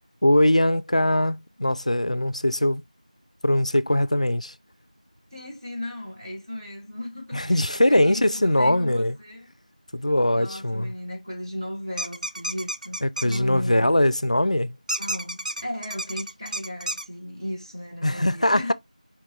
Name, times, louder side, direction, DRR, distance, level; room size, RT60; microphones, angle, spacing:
voice 1, 0.2-2.8 3.4-4.5 7.3-9.2 9.9-10.9 13.0-14.8 18.0-18.7, left 1 dB, 60° left, 0.4 m, -21 dB
voice 2, 5.3-9.5 10.3-14.0 15.0-18.7, left 1 dB, 30° right, 1.4 m, -36 dB
sound 1, 12.0-13.4 14.9-17.0, right 1 dB, 75° right, 0.4 m, -31 dB
4.6 x 3.5 x 2.8 m
figure-of-eight pair, 180°, 4 cm